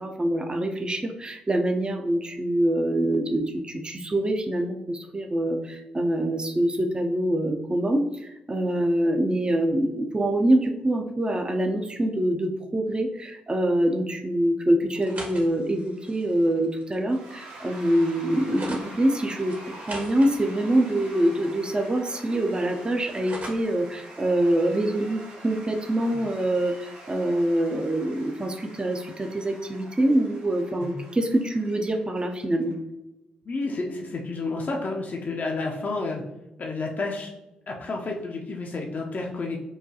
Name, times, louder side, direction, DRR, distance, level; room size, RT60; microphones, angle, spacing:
voice 1, 0.0-19.5 19.9-32.7, right 1 dB, 25° right, 4 dB, 0.5 m, -25 dB
sound 1, 14.9-18.9 19.5-21.9 22.2-23.7, right 1 dB, 45° right, 1.0 m, -42 dB
Cheering / Applause / Crowd, 17.1-32.7, right 2 dB, 75° right, 1.4 m, -46 dB
voice 2, 33.4-36.2 36.6-37.3 37.7-39.6, left 3 dB, 45° left, 0 dB, 0.5 m, -30 dB
4.6 x 2.2 x 2.7 m, 0.96 s
hypercardioid pair, 40°, 4 cm